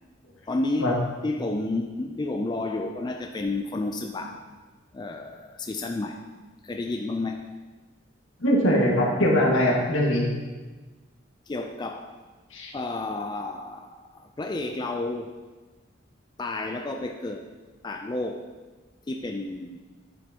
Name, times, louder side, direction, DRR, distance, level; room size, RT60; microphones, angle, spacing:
voice 1, 0.5-0.9 1.2-4.4 4.9-6.2 6.6-7.4 11.5-12.1 12.7-15.3 16.4-17.5 17.8-18.5 19.1-19.8, left 2 dB, 20° left, 4 dB, 0.3 m, -31 dB
voice 2, 8.4-10.2 12.5-12.7, equal, 85° left, -2 dB, 1.7 m, -21 dB
9.3 x 7.7 x 2.9 m, 1.3 s
head